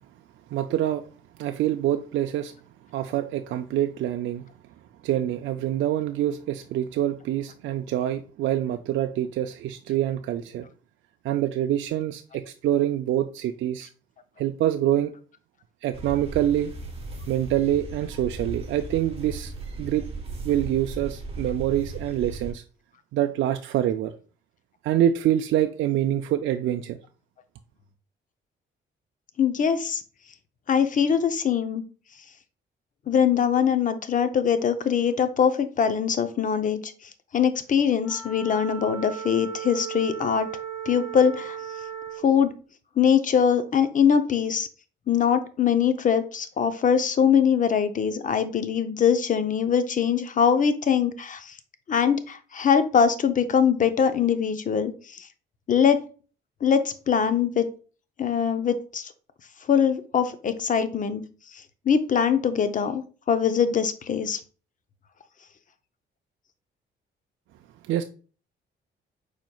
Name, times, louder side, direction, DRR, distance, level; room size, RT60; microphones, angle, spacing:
voice 1, 0.5-1.0 1.4-2.5 2.9-4.5 5.0-10.7 11.2-13.9 14.4-15.1 15.8-16.7 17.3-19.5 19.8-20.1 20.4-22.6 23.1-24.1 24.8-27.0 67.9-68.0, right 12 dB, 75° right, 0.4 m, -25 dB
sound 1, 15.9-22.5, right 3 dB, 30° right, 1.2 m, -36 dB
voice 2, 29.4-30.0 30.7-31.8 33.1-36.9 37.3-40.5 40.9-41.6 42.2-42.5 43.0-44.7 45.1-51.6 51.9-55.3 55.7-56.0 56.6-57.7 58.2-59.1 59.7-61.2 61.5-64.4, left 7 dB, 40° left, 0.6 m, -22 dB
Wind instrument woodwind instrument, 38.0-42.3, right 8 dB, 75° left, 1.3 m, -36 dB
5.0 x 4.3 x 2.3 m
cardioid pair, 90°, 20 cm